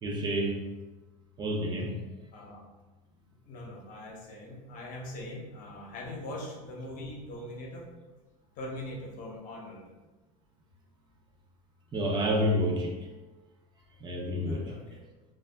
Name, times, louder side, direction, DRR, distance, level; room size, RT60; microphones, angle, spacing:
voice 1, 0.0-0.6 1.4-2.0 11.9-13.1 14.0-14.8, equal, 25° right, 0 dB, 0.5 m, -29 dB
voice 2, 2.3-2.6 3.4-7.8 8.6-9.8 14.5-15.0, left 1 dB, 45° left, -1 dB, 0.8 m, -41 dB
2.3 x 2.0 x 3.3 m, 1.2 s
supercardioid pair, 115°, 19 cm